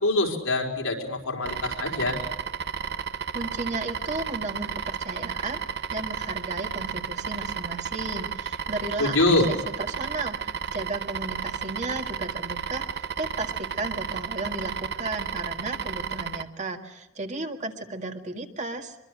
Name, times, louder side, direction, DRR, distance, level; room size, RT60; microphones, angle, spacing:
voice 1, 0.0-2.2 9.0-9.5, left 2 dB, 85° left, 0 dB, 4.7 m, -24 dB
sound 1, 1.4-16.4, right 7 dB, 55° right, 0.9 m, -33 dB
voice 2, 3.3-5.6 5.9-9.2 9.5-19.0, right 2 dB, 35° right, 4 dB, 1.9 m, -34 dB
24.0 x 23.5 x 6.4 m, 1.0 s
head